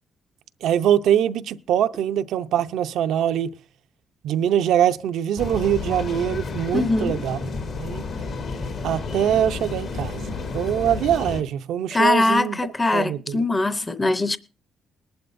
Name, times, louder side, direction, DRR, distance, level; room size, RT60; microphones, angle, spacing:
voice 1, 0.6-3.5 4.2-7.4 7.8-8.1 8.8-12.6 12.9-13.4, right 10 dB, 80° right, 0.6 m, -23 dB
sound 1, 5.4-11.4, left 4 dB, 65° left, 2.1 m, -31 dB
voice 2, 6.7-7.2 11.9-14.4, left 2 dB, 20° left, 0.7 m, -21 dB
20.5 x 11.5 x 2.6 m
cardioid pair, 90°, 0 cm